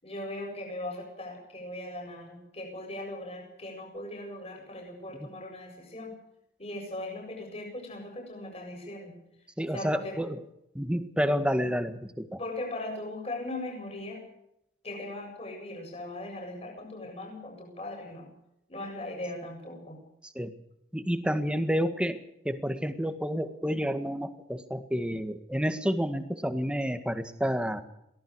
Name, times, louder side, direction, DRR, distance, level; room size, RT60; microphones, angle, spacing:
voice 1, 0.0-6.2 6.6-9.1 9.7-10.2 12.4-14.2 14.8-18.3 18.7-20.0, left 1 dB, 30° left, 1 dB, 7.6 m, -39 dB
voice 2, 9.6-10.4 10.7-12.4 20.2-20.5 20.9-22.2 22.4-27.8, equal, 5° right, 8 dB, 1.8 m, -29 dB
23.0 x 18.0 x 6.5 m, 0.79 s
head